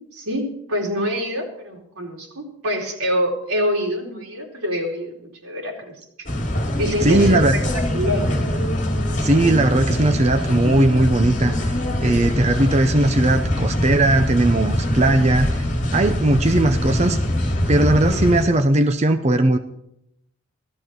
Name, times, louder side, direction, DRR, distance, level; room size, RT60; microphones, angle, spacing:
voice 1, 0.1-5.9 6.2-6.3 6.7-8.3, equal, 90° right, -1 dB, 4.4 m, -26 dB
sound 1, 6.3-18.4, left 1 dB, 35° left, 2.6 m, -23 dB
voice 2, 7.0-7.6 9.2-11.8 12.0-15.7 15.9-17.2 17.7-19.6, right 2 dB, 30° right, 7 dB, 0.6 m, -18 dB
16.5 x 13.5 x 4.6 m, 0.77 s
head